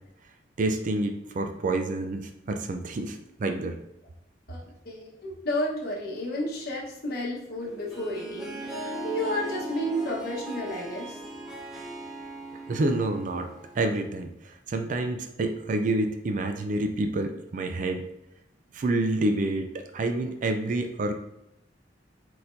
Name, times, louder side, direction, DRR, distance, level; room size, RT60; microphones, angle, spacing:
voice 1, 0.6-3.8 12.7-13.5 13.7-18.0 18.7-21.1, right 2 dB, 45° right, 6 dB, 0.4 m, -28 dB
voice 2, 4.5-11.2, left 1 dB, 55° left, -3 dB, 1.1 m, -32 dB
Harp, 7.6-14.1, right 1 dB, 5° right, 1.0 m, -38 dB
4.3 x 4.1 x 2.6 m, 0.84 s
head